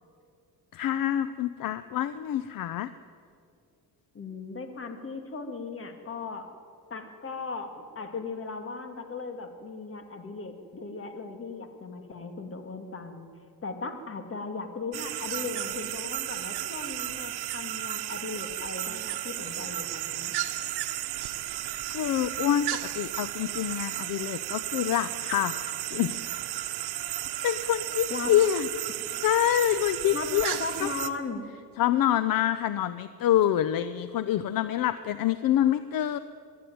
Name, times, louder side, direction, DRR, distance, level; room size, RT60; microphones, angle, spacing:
voice 1, 0.7-2.9 21.9-26.4 27.4-28.7 29.2-30.9 31.8-36.2, left 11 dB, 60° left, 13 dB, 0.7 m, -26 dB
voice 2, 4.1-6.5 6.9-13.3 13.6-20.3 28.1-28.3 30.1-30.3 30.6-31.4, left 4 dB, 35° left, 6 dB, 2.4 m, -37 dB
sound 1, 14.9-31.1, right 14 dB, 90° right, 1.2 m, -34 dB
23.5 x 12.0 x 9.4 m, 2.3 s
cardioid pair, 130°, 38 cm